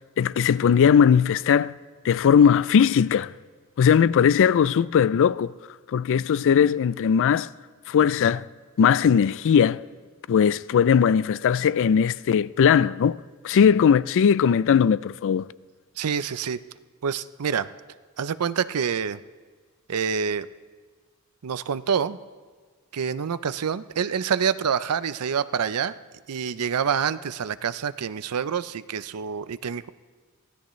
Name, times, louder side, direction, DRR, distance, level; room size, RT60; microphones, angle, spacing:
voice 1, 0.2-1.8 2.0-3.3 3.8-5.5 5.9-7.5 7.9-8.5 8.8-9.8 10.3-15.5, left 7 dB, 60° left, 0.3 m, -19 dB
voice 2, 16.0-16.6 17.0-17.7 18.2-19.2 19.9-20.5 21.4-22.2 22.9-26.0 26.3-29.9, right 7 dB, 90° right, 0.5 m, -27 dB
23.0 x 16.0 x 3.2 m
head